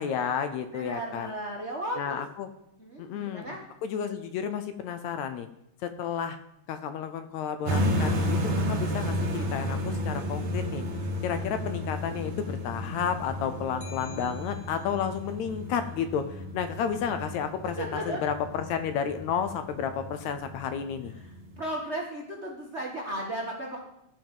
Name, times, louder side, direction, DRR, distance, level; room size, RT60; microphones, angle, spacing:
voice 1, 0.0-1.3 2.0-2.5 3.0-3.6 3.8-5.5 5.8-6.4 6.7-10.8 11.2-21.1, left 7 dB, 75° left, 9 dB, 1.8 m, -32 dB
voice 2, 0.7-2.2 2.8-3.6 17.8-18.2 21.2-21.3 21.6-23.8, right 1 dB, 75° right, -1 dB, 0.6 m, -35 dB
sound 1, 7.7-21.6, equal, 55° right, 1.6 m, -32 dB
sound 2, 13.8-15.2, left 4 dB, 55° left, 1.4 m, -49 dB
14.5 x 5.5 x 5.4 m, 0.80 s
omnidirectional pair, 3.6 m